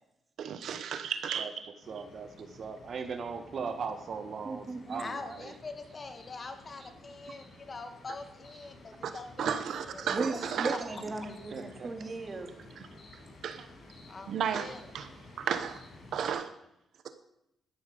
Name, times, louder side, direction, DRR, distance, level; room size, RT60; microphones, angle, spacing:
voice 1, 0.4-1.5 9.0-9.1 9.4-10.8 12.8-12.9 13.4-13.7 14.3-15.1 15.4-15.8 16.1-16.5, right 7 dB, 75° right, 9 dB, 0.9 m, -33 dB
voice 2, 1.4-5.5 11.5-11.9, right 5 dB, 55° right, 7 dB, 1.5 m, -39 dB
sound 1, 1.8-16.3, left 2 dB, 65° left, 6.2 m, -53 dB
voice 3, 4.4-5.0 10.0-12.5, right 3 dB, 35° right, 4 dB, 2.4 m, -36 dB
voice 4, 5.0-10.1 10.3-10.4 14.1-14.8 15.1-15.2, left 3 dB, 40° left, 7 dB, 1.9 m, -44 dB
12.5 x 12.0 x 5.4 m, 0.83 s
cardioid pair, 75°, 0 cm